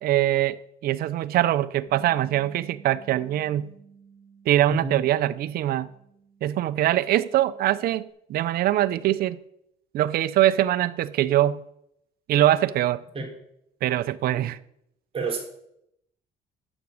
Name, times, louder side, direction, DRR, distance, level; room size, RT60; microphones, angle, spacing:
voice 1, 0.0-3.7 4.5-5.9 6.4-9.4 9.9-11.6 12.3-13.0 13.8-14.6, right 13 dB, 65° right, 0.6 m, -23 dB
Bass guitar, 1.9-8.1, right 6 dB, 15° right, 5.6 m, -53 dB
voice 2, 4.8-5.0 13.2-13.3 15.1-15.4, right 4 dB, 35° right, 3.5 m, -28 dB
11.0 x 7.1 x 6.4 m
cardioid pair, 110°, 17 cm